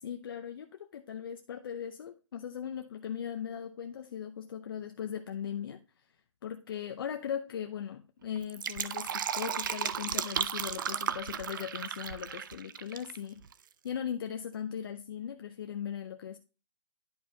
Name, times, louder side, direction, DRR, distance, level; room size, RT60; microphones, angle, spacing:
voice 1, 0.0-6.1 6.4-13.4 13.8-16.4, left 8 dB, 45° left, 6 dB, 0.6 m, -39 dB
Fill (with liquid), 8.4-13.2 13.4-13.5, right 8 dB, 40° right, 0.4 m, -34 dB
11.0 x 5.0 x 2.7 m, 0.33 s
hypercardioid pair, 160°, 17 cm